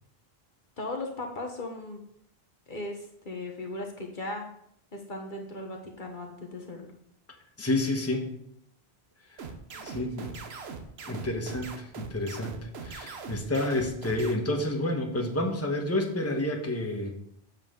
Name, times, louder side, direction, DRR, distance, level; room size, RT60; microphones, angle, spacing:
voice 1, 0.8-2.0 2.7-4.5 4.9-6.9 9.7-10.3, left 2 dB, 50° left, 2 dB, 1.2 m, -37 dB
voice 2, 7.6-8.3 9.3-9.4 9.8-10.3 11.0-17.2, left 1 dB, 15° left, 2 dB, 1.1 m, -29 dB
sound 1, 9.4-14.3, right 5 dB, 80° right, 1.2 m, -40 dB
7.5 x 7.4 x 3.8 m, 0.71 s
omnidirectional pair, 1.1 m